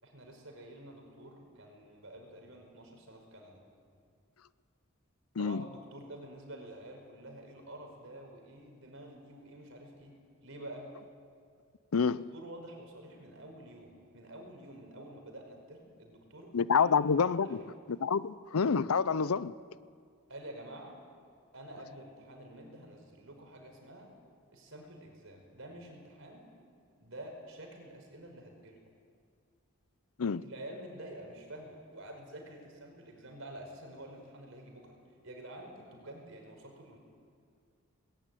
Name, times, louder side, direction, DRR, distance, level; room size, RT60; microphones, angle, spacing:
voice 1, 0.0-3.6 5.4-10.9 12.0-16.9 17.3-17.6 20.3-21.0 21.5-24.1 24.5-26.5 27.0-28.8 30.4-34.9 35.2-37.0, right 1 dB, 65° right, 5.0 m, -48 dB
voice 2, 11.9-12.3 16.5-19.5 30.2-30.4, left 5 dB, 85° left, 0.6 m, -28 dB
20.0 x 19.0 x 9.2 m
head